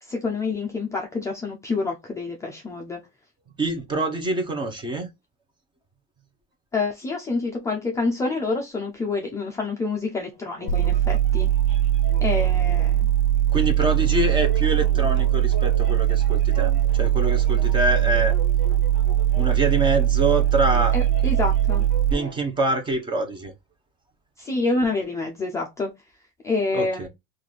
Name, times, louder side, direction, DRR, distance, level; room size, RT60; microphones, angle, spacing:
voice 1, 0.0-3.0 6.7-11.5 12.2-13.1 20.9-21.8 24.4-25.9 26.4-27.1, left 3 dB, 10° left, 0.4 m, -27 dB
voice 2, 3.6-5.1 13.5-18.3 19.4-20.9 22.1-23.5 26.7-27.1, right 2 dB, 15° right, 0.7 m, -25 dB
sound 1, 10.3-22.4, right 3 dB, 30° right, 1.1 m, -41 dB
sound 2, 10.7-22.1, right 11 dB, 50° left, 0.9 m, -20 dB
3.1 x 2.5 x 4.0 m
cardioid pair, 155°, 30 cm